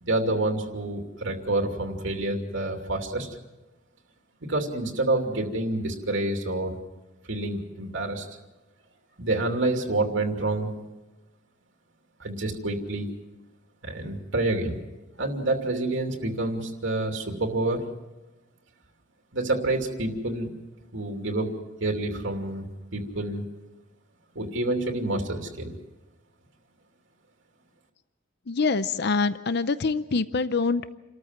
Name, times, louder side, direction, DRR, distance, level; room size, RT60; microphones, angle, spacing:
voice 1, 0.0-3.3 4.5-6.8 7.3-8.2 9.2-10.7 12.2-13.1 13.8-14.8 15.2-17.8 19.3-20.5 20.9-21.5 21.8-22.7 22.9-23.5 24.3-25.7, right 2 dB, 70° right, 3 dB, 2.8 m, -28 dB
voice 2, 28.5-31.0, left 4 dB, 55° left, 13 dB, 0.6 m, -25 dB
28.5 x 14.0 x 7.6 m, 1.1 s
head